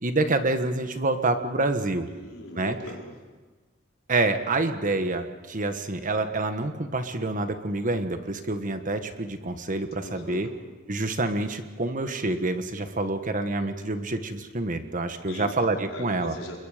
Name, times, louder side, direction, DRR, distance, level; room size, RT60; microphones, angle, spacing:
voice 1, 0.0-2.1 2.5-2.8 4.1-10.5 10.9-16.3, right 2 dB, 40° right, 8 dB, 1.4 m, -27 dB
voice 2, 2.1-3.1 10.0-10.5 15.3-15.5 15.9-16.6, left 1 dB, 80° left, -2 dB, 5.2 m, -39 dB
29.0 x 22.5 x 5.1 m, 1.3 s
head